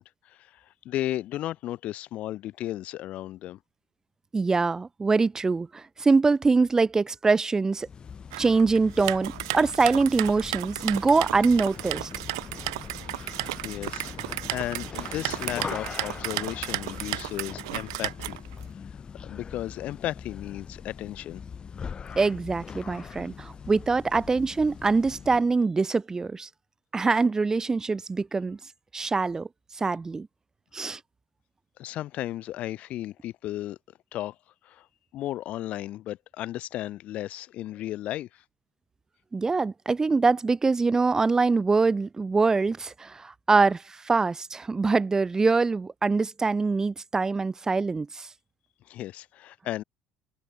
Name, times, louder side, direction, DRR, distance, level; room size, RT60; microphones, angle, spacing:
voice 1, 0.0-3.6 13.6-18.4 18.8-21.4 31.8-33.8 34.1-34.4 34.6-34.9 35.1-38.4 48.8-49.8, left 14 dB, 60° left, 0.5 m, -35 dB
voice 2, 4.3-7.9 8.4-12.1 22.2-26.5 26.9-28.6 28.9-29.5 29.7-30.3 30.7-31.0 39.3-48.3, right 4 dB, 25° right, 0.7 m, -24 dB
sound 1, 7.8-25.5, left 6 dB, 35° left, 3.7 m, -41 dB
sound 2, 8.3-18.6, right 22 dB, 80° right, 0.4 m, -34 dB
hypercardioid pair, 70°, 3 cm